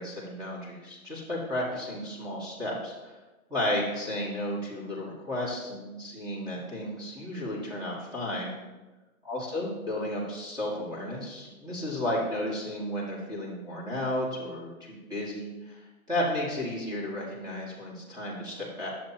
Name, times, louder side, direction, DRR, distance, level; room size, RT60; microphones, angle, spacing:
voice 1, 0.0-3.1 3.5-8.5 9.3-15.8 16.1-18.9, left 1 dB, 10° right, -5 dB, 2.0 m, -33 dB
11.0 x 7.4 x 2.9 m, 1.2 s
hypercardioid pair, 155°, 44 cm